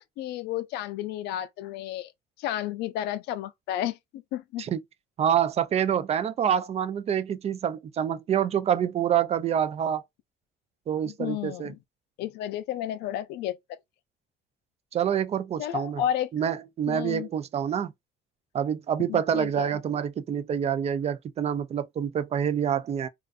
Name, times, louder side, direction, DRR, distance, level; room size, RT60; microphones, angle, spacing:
voice 1, 0.0-2.1 2.4-4.6 11.1-11.8 12.2-13.6 15.6-16.3 16.9-17.3 19.1-19.8, left 11 dB, 80° left, 0.4 m, -32 dB
voice 2, 5.2-10.0 10.9-11.7 14.9-16.0 16.3-17.9 18.5-23.1, right 9 dB, 40° right, 0.3 m, -27 dB
2.4 x 2.3 x 2.4 m
cardioid pair, 110°, 17 cm